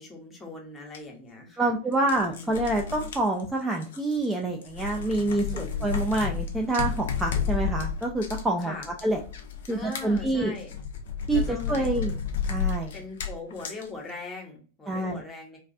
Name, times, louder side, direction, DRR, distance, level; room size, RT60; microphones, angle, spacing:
voice 1, 0.0-1.7 2.3-2.7 5.3-5.9 8.6-8.9 9.7-10.7 11.3-12.2 12.9-15.6, left 2 dB, 15° left, 1 dB, 0.8 m, -41 dB
sound 1, 0.9-1.0 1.9-4.3 4.6-13.9, left 7 dB, 60° left, 0.4 m, -32 dB
voice 2, 1.6-8.7 9.0-9.2 9.7-10.5 11.3-12.1 12.5-12.9 14.9-15.2, right 2 dB, 10° right, 0 dB, 0.3 m, -27 dB
2.3 x 2.1 x 2.4 m, 0.38 s
figure-of-eight pair, 90°, 0 cm